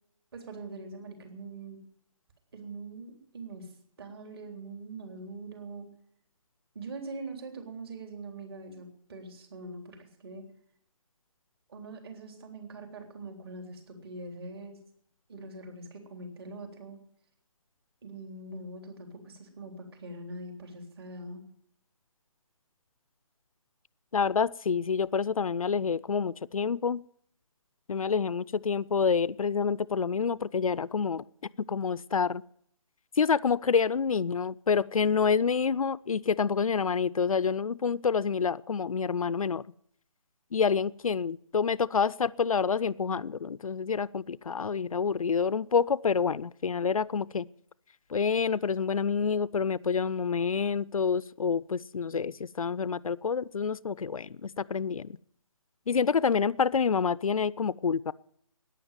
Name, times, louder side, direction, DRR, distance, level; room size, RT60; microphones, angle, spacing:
voice 1, 0.3-1.8 2.5-3.7 4.0-5.9 6.8-10.4 11.7-14.8 15.3-17.0 18.0-21.4, right 2 dB, 45° right, 3.6 m, -43 dB
voice 2, 24.1-27.0 27.9-31.2 31.7-32.4 33.2-39.6 40.5-47.5 48.1-55.1 55.9-58.1, left 6 dB, 90° left, 0.5 m, -27 dB
14.0 x 10.5 x 9.1 m
hypercardioid pair, 160°, 17 cm